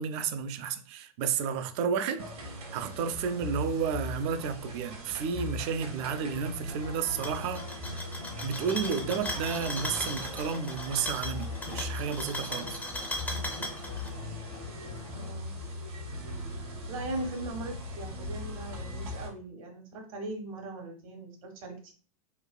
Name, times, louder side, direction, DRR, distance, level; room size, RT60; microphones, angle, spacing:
voice 1, 0.0-7.6 8.4-12.8, right 6 dB, 50° right, 0.4 m, -32 dB
sound 1, 2.2-19.3, left 1 dB, 85° right, 1.1 m, -40 dB
sound 2, 5.9-15.3, left 3 dB, 55° left, 0.8 m, -46 dB
sound 3, 7.1-14.1, left 1 dB, 10° left, 0.5 m, -38 dB
voice 2, 15.1-15.5 16.9-21.9, right 2 dB, 65° right, 1.0 m, -39 dB
3.2 x 2.3 x 2.2 m
hypercardioid pair, 95°, 19 cm